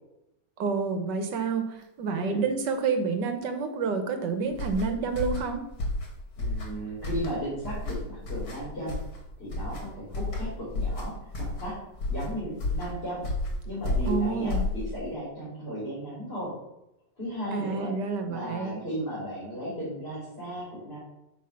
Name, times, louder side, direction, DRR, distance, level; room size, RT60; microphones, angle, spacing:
voice 1, 0.6-5.6 14.1-14.6 17.5-18.8, right 5 dB, 75° right, 7 dB, 1.6 m, -29 dB
voice 2, 2.1-2.4 6.4-9.0 9.4-11.8 12.1-13.3 13.6-16.5 17.2-17.9 18.2-21.0, equal, 35° left, -8 dB, 3.1 m, -35 dB
sound 1, 4.5-15.1, left 2 dB, 60° left, 2.1 m, -32 dB
8.6 x 3.7 x 5.7 m, 0.87 s
omnidirectional pair, 1.9 m